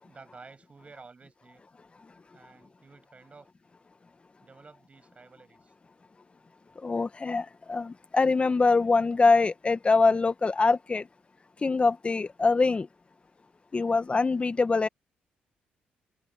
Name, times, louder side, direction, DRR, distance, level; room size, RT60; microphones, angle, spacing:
voice 1, 0.0-1.6 2.3-3.5 4.4-5.7, right 4 dB, 35° right, 7.1 m, -52 dB
voice 2, 6.8-11.0 11.6-12.9 13.7-14.9, left 3 dB, 30° left, 1.4 m, -24 dB
supercardioid pair, 65°, 4 cm